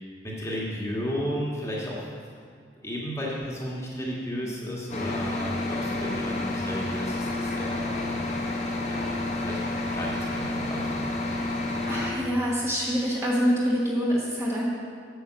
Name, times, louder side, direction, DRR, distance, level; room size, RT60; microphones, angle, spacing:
voice 1, 0.2-2.0 2.8-8.2 8.9-9.0 9.4-11.4, equal, 15° left, -5 dB, 1.6 m, -34 dB
sound 1, 4.9-12.1, left 2 dB, 40° left, 1.3 m, -30 dB
voice 2, 11.9-14.6, equal, 15° right, -5 dB, 1.5 m, -26 dB
8.8 x 7.5 x 6.3 m, 2.3 s
head